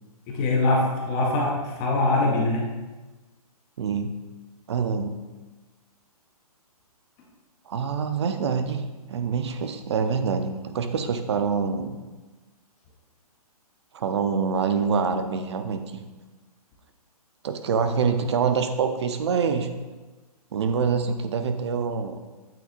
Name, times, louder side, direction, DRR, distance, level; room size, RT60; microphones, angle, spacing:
voice 1, 0.3-2.7 17.8-18.1, left 2 dB, 10° left, -1 dB, 0.3 m, -23 dB
voice 2, 3.8-4.1 4.7-5.2 7.7-8.8 9.1-12.0 13.9-16.0 17.4-19.7 20.5-22.2, right 6 dB, 45° right, 8 dB, 0.6 m, -25 dB
8.6 x 6.0 x 2.5 m, 1.2 s
hypercardioid pair, 165°, 20 cm